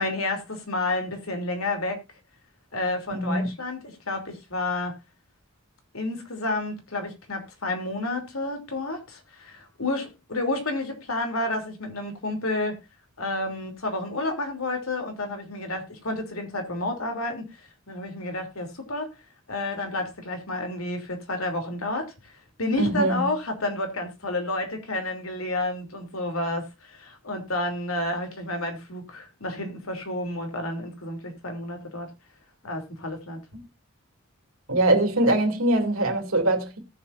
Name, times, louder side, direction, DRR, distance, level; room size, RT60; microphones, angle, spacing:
voice 1, 0.0-2.0 2.7-5.0 5.9-12.8 13.2-19.1 19.5-22.3 22.6-32.1 32.6-33.4, left 2 dB, 80° left, 3.2 m, -30 dB
voice 2, 3.1-3.5 22.8-23.2 34.7-36.8, right 1 dB, 75° right, 2.8 m, -22 dB
18.5 x 7.2 x 2.6 m
head